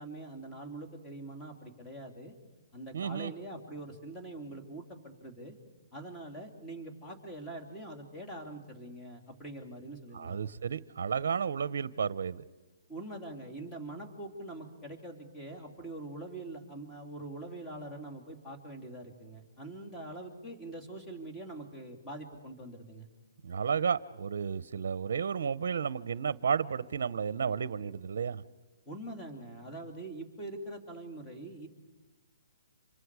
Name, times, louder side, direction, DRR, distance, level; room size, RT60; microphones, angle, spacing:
voice 1, 0.0-2.3 2.7-5.5 5.9-10.5 12.9-23.1 28.9-31.7, right 2 dB, 10° left, 2 dB, 3.1 m, -44 dB
voice 2, 2.9-3.3 10.1-12.4 23.4-28.4, right 6 dB, 65° right, 18 dB, 0.7 m, -32 dB
29.5 x 26.5 x 4.8 m, 1.1 s
hypercardioid pair, 150°, 0 cm